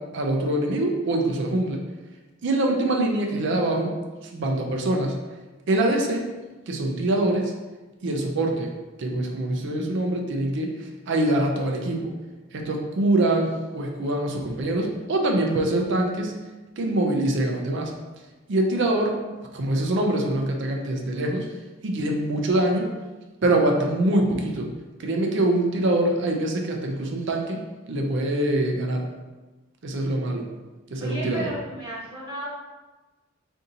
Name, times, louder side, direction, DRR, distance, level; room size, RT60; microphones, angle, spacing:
voice 1, 0.0-1.8 2.4-3.9 4.2-5.2 5.7-6.3 6.7-7.5 8.0-8.7 9.0-12.1 12.5-16.3 16.8-17.9 18.5-19.2 19.5-21.5 21.8-22.9 23.4-24.7 25.0-27.6 27.9-29.1 29.8-30.5 30.9-31.5, right 1 dB, 60° right, 2 dB, 0.4 m, -24 dB
voice 2, 31.0-32.5, right 2 dB, 20° right, -8 dB, 1.1 m, -34 dB
3.8 x 2.6 x 2.7 m, 1.2 s
head